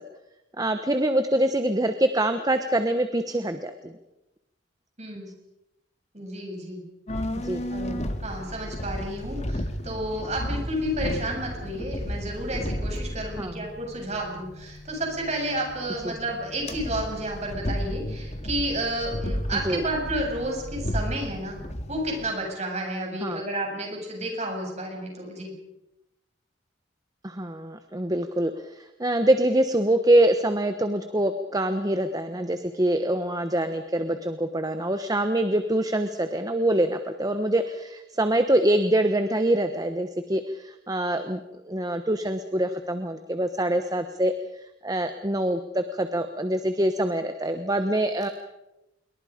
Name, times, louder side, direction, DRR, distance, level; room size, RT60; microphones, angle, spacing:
voice 1, 0.6-4.0 7.4-7.6 13.4-13.7 16.0-16.2 19.6-19.8 23.2-23.4 27.2-48.3, right 1 dB, 20° right, 9 dB, 1.1 m, -25 dB
voice 2, 5.0-5.3 6.1-6.8 7.7-21.6 21.9-25.5, right 1 dB, 35° right, 1 dB, 8.0 m, -31 dB
sound 1, 7.1-22.3, equal, 40° left, 2.0 m, -33 dB
27.5 x 23.0 x 5.2 m, 0.94 s
head